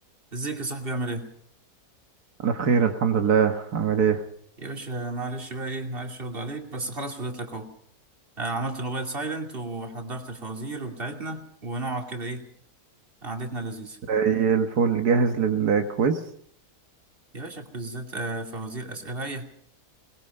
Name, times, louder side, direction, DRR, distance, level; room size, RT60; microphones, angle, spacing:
voice 1, 0.3-1.3 4.6-7.7 8.4-12.4 13.2-14.0 17.3-19.4, right 2 dB, 35° right, 3 dB, 2.8 m, -33 dB
voice 2, 2.4-4.2 14.1-16.2, right 6 dB, 80° right, 5 dB, 1.9 m, -22 dB
22.5 x 21.0 x 5.5 m, 0.65 s
omnidirectional pair, 1.6 m